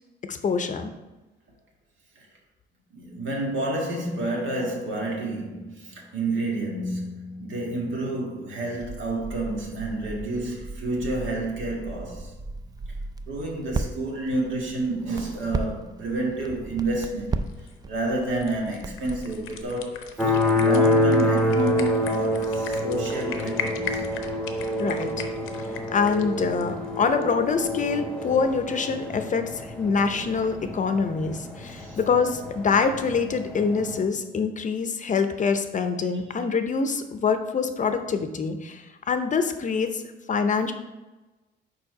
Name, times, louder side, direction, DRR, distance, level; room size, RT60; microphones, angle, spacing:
voice 1, 0.2-0.9 24.8-25.1 25.9-40.0 40.3-40.7, left 5 dB, 40° left, 0.6 m, -25 dB
voice 2, 2.9-12.3 13.3-24.1 31.6-32.0, right 2 dB, 75° right, 1.8 m, -30 dB
Crackle, 8.8-19.6, right 3 dB, 20° right, 0.4 m, -36 dB
sound 1, 16.9-27.7, left 7 dB, 90° left, 0.7 m, -39 dB
sound 2, 20.2-34.0, left 1 dB, 5° left, 0.9 m, -27 dB
4.8 x 4.5 x 4.8 m
cardioid pair, 90°, 20 cm